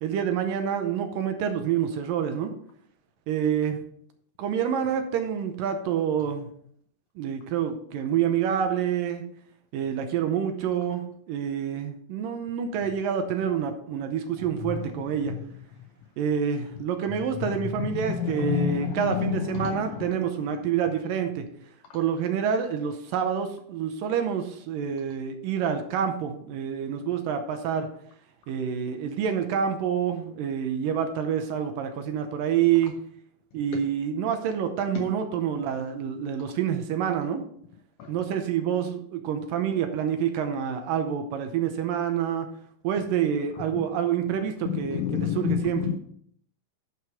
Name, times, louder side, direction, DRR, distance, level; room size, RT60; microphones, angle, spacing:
voice 1, 0.0-2.5 3.3-3.8 4.4-6.5 7.2-9.2 9.7-15.4 16.2-21.4 21.9-27.9 28.5-33.0 33.5-37.5 38.1-42.5 42.8-45.9, right 8 dB, 75° right, 6 dB, 2.3 m, -27 dB
voice 2, 18.0-19.8 44.7-46.0, left 7 dB, 80° left, 4 dB, 1.8 m, -28 dB
11.0 x 5.1 x 4.9 m, 0.66 s
omnidirectional pair, 4.4 m